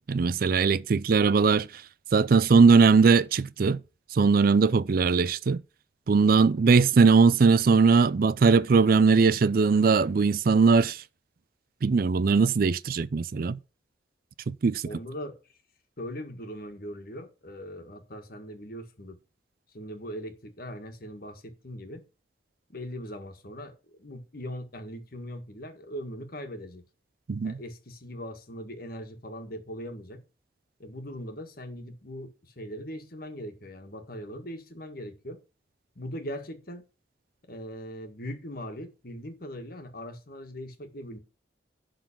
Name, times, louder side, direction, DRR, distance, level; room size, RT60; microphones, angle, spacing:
voice 1, 0.0-1.8 2.1-3.8 4.1-5.6 6.1-11.0 11.8-13.6 14.5-14.8 27.3-27.6, right 4 dB, 50° right, 0.4 m, -20 dB
voice 2, 14.8-15.4 16.0-19.2 19.7-22.0 22.7-26.8 27.4-30.2 30.8-35.4 36.0-36.8 37.5-41.2, equal, 55° left, 1.8 m, -40 dB
11.5 x 4.0 x 7.4 m
head